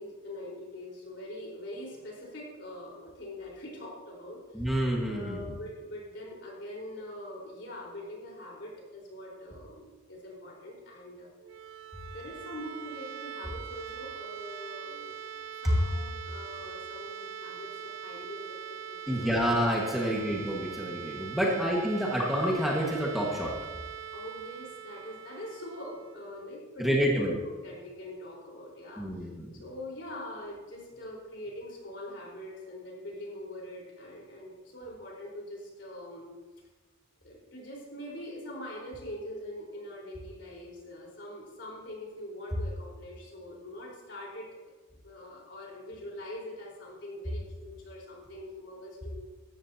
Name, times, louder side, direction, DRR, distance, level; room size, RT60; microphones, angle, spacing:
voice 1, 0.0-4.6 5.0-11.3 12.1-15.1 15.6-19.6 20.1-20.2 24.1-29.0 29.5-36.3 37.2-44.5 45.0-49.2, left 1 dB, 60° left, -3 dB, 4.4 m, -43 dB
voice 2, 4.5-5.5 15.6-15.7 19.1-23.5 26.8-27.3 29.0-29.6, equal, ahead, -3 dB, 1.6 m, -28 dB
sound 1, 11.4-27.2, right 8 dB, 75° right, 0.6 m, -42 dB
15.5 x 13.0 x 2.9 m, 1.3 s
head